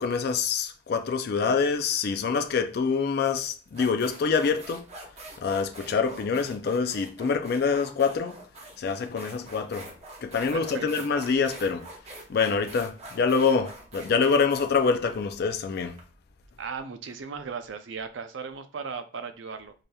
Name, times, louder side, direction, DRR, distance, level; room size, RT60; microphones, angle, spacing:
voice 1, 0.0-4.9 5.4-8.4 8.8-9.9 10.2-11.9 12.3-16.0, left 5 dB, 55° left, 0.4 m, -26 dB
sound 1, 3.1-3.2 3.7-16.0, right 2 dB, 35° right, 0.8 m, -45 dB
voice 2, 10.5-11.1 16.6-19.7, right 5 dB, 75° right, 0.5 m, -37 dB
4.8 x 2.8 x 2.3 m
head